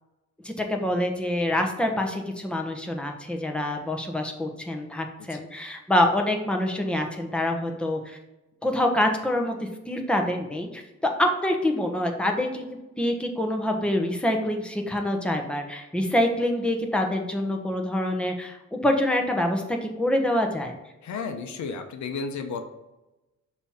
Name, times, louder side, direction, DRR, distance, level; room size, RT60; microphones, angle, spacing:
voice 1, 0.4-8.2 8.6-20.7, left 1 dB, 5° left, 2 dB, 1.0 m, -26 dB
voice 2, 21.0-22.6, left 5 dB, 70° left, 6 dB, 0.9 m, -33 dB
6.5 x 3.0 x 5.7 m, 1.0 s
cardioid pair, 90°, 30 cm